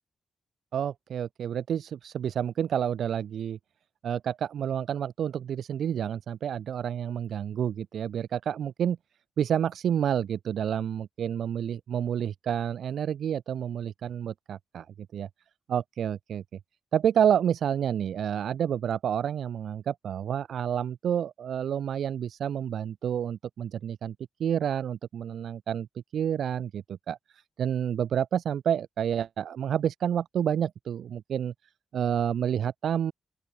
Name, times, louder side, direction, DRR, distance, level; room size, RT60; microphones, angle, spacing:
voice 1, 0.7-3.6 4.0-9.0 9.4-14.9 15.1-15.3 15.7-16.4 16.9-24.1 24.4-25.9 26.1-27.2 27.6-31.5 31.9-33.1, right 9 dB, 80° right, 1.1 m, -29 dB
open air
cardioid pair, 105°, 0 cm